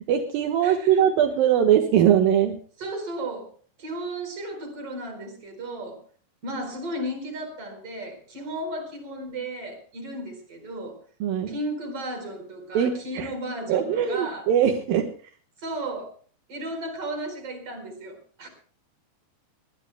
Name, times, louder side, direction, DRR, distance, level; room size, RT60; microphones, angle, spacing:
voice 1, 0.1-2.6 11.2-11.6 12.7-13.3 13.7-15.1, right 9 dB, 70° right, 5 dB, 2.2 m, -21 dB
voice 2, 0.6-1.1 2.8-6.0 6.4-11.0 11.5-14.5 15.6-16.2 16.5-18.5, right 1 dB, 30° right, 7 dB, 4.9 m, -34 dB
22.5 x 20.0 x 2.2 m, 0.42 s
omnidirectional pair, 5.8 m